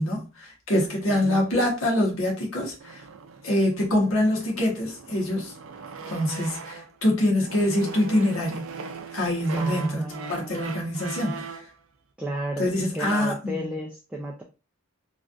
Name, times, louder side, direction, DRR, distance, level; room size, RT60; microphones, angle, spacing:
voice 1, 0.0-3.0 3.4-5.5 6.1-8.7 9.1-10.0 10.3-11.4 12.6-13.7, left 1 dB, 80° left, 1.2 m, -25 dB
voice 2, 1.1-1.5 9.5-10.6 12.2-14.4, right 1 dB, 5° right, 0.3 m, -33 dB
sound 1, 2.8-7.0 7.4-11.7, right 4 dB, 75° right, 0.4 m, -40 dB
3.2 x 2.4 x 2.5 m
head